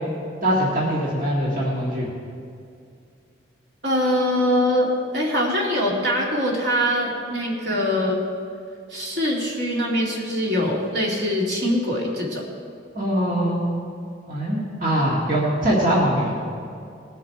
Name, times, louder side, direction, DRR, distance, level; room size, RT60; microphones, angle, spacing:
voice 1, 0.4-2.1 12.9-13.8 14.3-16.3, equal, 45° right, -6 dB, 1.9 m, -22 dB
voice 2, 3.8-8.2 8.9-12.4, equal, 65° right, -3 dB, 2.5 m, -23 dB
19.5 x 7.1 x 4.7 m, 2.4 s
head